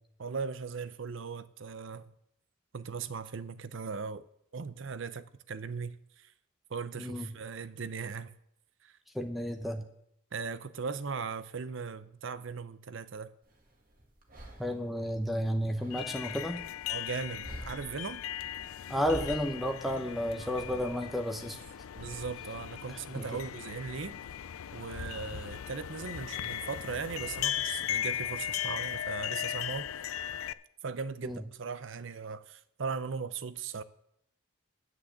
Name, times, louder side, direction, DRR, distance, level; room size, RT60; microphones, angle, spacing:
voice 1, 0.2-2.1 2.7-4.2 4.5-6.3 6.7-8.3 8.8-8.9 10.3-13.3 14.6-14.7 16.9-18.2 20.4-20.5 21.9-24.2 24.7-29.9 30.8-33.8, right 5 dB, 65° right, 0.6 m, -38 dB
voice 2, 7.0-7.3 9.1-9.8 14.6-16.6 18.9-21.6 22.9-23.3 31.2-31.4, equal, ahead, 0.7 m, -32 dB
sound 1, 13.4-26.5, right 1 dB, 40° right, 1.6 m, -51 dB
sound 2, 15.9-30.5, left 10 dB, 85° left, 0.4 m, -38 dB
10.5 x 6.2 x 7.9 m
head